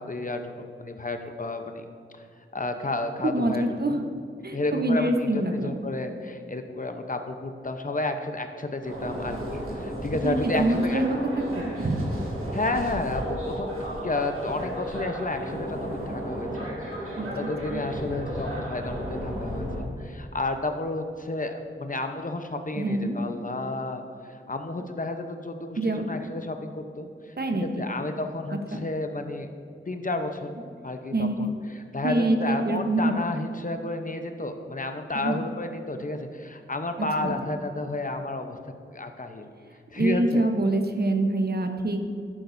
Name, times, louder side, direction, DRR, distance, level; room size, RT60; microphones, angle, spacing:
voice 1, 0.0-1.9 2.5-4.0 4.5-11.0 12.5-13.8 14.0-16.7 17.1-24.0 24.3-27.3 27.6-29.5 29.9-30.5 30.8-38.6 38.9-39.5 39.9-40.4, left 2 dB, 40° left, 6 dB, 0.8 m, -31 dB
voice 2, 3.2-4.0 4.4-5.8 10.2-11.2 11.8-12.0 17.2-17.3 17.7-17.8 22.8-23.2 25.8-26.1 27.4-27.6 31.1-31.5 32.0-33.1 35.1-35.4 37.2-37.4 40.0-42.1, right 1 dB, 50° right, 5 dB, 1.0 m, -25 dB
sound 1, 8.8-19.8, right 1 dB, 85° right, 2.2 m, -34 dB
11.5 x 9.3 x 2.7 m, 2.5 s
cardioid pair, 45°, 21 cm